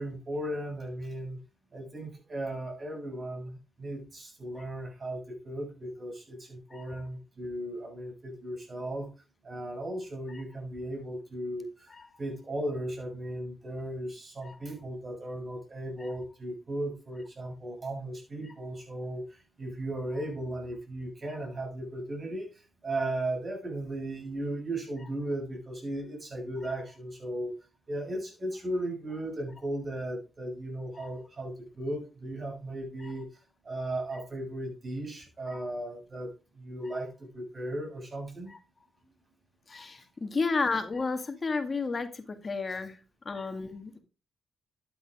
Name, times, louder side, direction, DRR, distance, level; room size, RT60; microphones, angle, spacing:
voice 1, 0.0-1.4 1.7-9.1 9.4-27.5 27.9-38.5 40.3-40.4 42.7-42.8, right 1 dB, 40° right, 2 dB, 7.5 m, -36 dB
voice 2, 39.7-43.0 43.3-44.0, left 4 dB, 40° left, 7 dB, 2.0 m, -32 dB
12.0 x 8.6 x 3.7 m, 0.30 s
cardioid pair, 65°, 0 cm